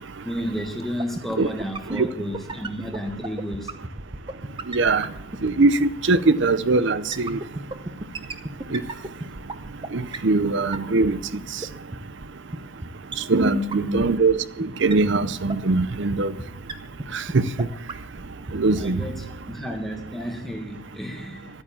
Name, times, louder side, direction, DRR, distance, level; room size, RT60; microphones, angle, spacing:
voice 1, 0.2-3.7 13.4-14.1 18.7-21.5, equal, ahead, 2 dB, 1.6 m, -31 dB
sound 1, 1.0-5.6 7.1-9.9 10.1-10.2 10.4-10.5 10.7-10.8 11.0-11.1 11.3-11.4 11.6-11.7 11.9-12.0 12.2-12.3 12.5-12.6 12.8-12.9 13.1-13.2 13.4-13.5 13.7-13.8 14.0-14.3 14.6-14.7 14.9-15.0 15.2-15.3 15.5-15.6 15.8-15.9 16.1-16.2 16.4-16.5 16.7-16.8 17.0-17.1 17.3-17.4 17.6-17.7 17.9-18.2 18.5-18.6 18.8-18.9, right 2 dB, 25° right, 0.7 m, -31 dB
voice 2, 4.7-5.1 5.4-7.4 8.7-8.8 9.9-11.2 13.3-16.3 17.1-17.7 18.5-19.0, right 3 dB, 60° right, 15 dB, 0.6 m, -21 dB
12.5 x 9.0 x 7.2 m, 0.79 s
head